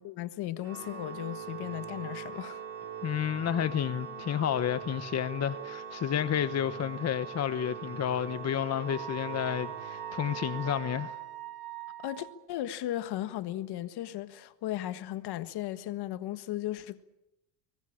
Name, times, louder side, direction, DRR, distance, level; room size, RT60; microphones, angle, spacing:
voice 1, 0.0-2.6 12.0-17.0, left 13 dB, 65° left, 1.6 m, -36 dB
Organ, 0.6-11.5, right 7 dB, 35° right, 4.8 m, -42 dB
voice 2, 3.0-11.1, left 9 dB, 35° left, 1.1 m, -31 dB
Wind instrument woodwind instrument, 8.9-12.4, right 11 dB, 60° right, 3.4 m, -42 dB
23.5 x 20.5 x 8.7 m
cardioid pair, 105°, 43 cm